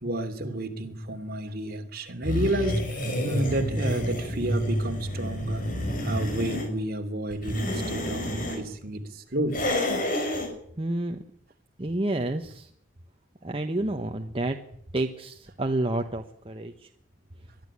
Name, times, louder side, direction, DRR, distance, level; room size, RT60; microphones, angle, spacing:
voice 1, 0.0-5.7 6.0-8.3 8.6-9.6, right 1 dB, 50° right, 6 dB, 2.9 m, -31 dB
sound 1, 2.2-6.7 7.3-8.6 9.5-10.5, equal, 45° left, 6.2 m, -29 dB
voice 2, 10.8-11.2 11.8-12.7 13.4-14.6 14.9-16.9, right 1 dB, 30° right, 5 dB, 1.2 m, -29 dB
22.5 x 12.5 x 9.8 m, 0.67 s
head